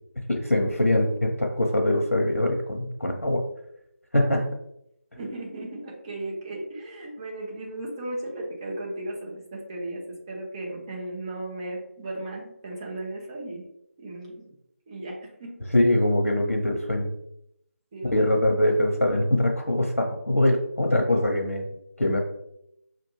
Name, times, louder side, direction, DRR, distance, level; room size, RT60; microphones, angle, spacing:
voice 1, 0.3-3.5 4.1-4.5 15.7-17.1 18.1-21.7 22.0-22.2, left 1 dB, 85° left, 1 dB, 0.8 m, -23 dB
voice 2, 5.2-13.6 14.0-14.4 14.9-15.6 17.9-18.6, right 1 dB, 20° right, -4 dB, 1.0 m, -36 dB
5.8 x 2.5 x 3.1 m, 0.80 s
figure-of-eight pair, 165°, 8 cm